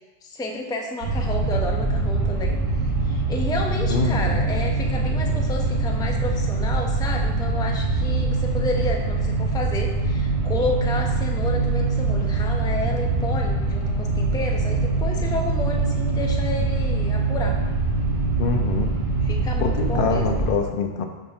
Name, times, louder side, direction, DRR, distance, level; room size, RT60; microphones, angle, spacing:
voice 1, 0.2-2.6 3.0-17.6 19.2-20.3, left 1 dB, 5° left, 0 dB, 0.4 m, -31 dB
sound 1, 1.0-20.5, right 3 dB, 75° right, 1.5 m, -23 dB
voice 2, 3.9-4.5 18.4-18.9 19.6-21.0, left 5 dB, 60° left, 4 dB, 0.8 m, -25 dB
5.0 x 3.4 x 5.5 m, 1.2 s
omnidirectional pair, 1.0 m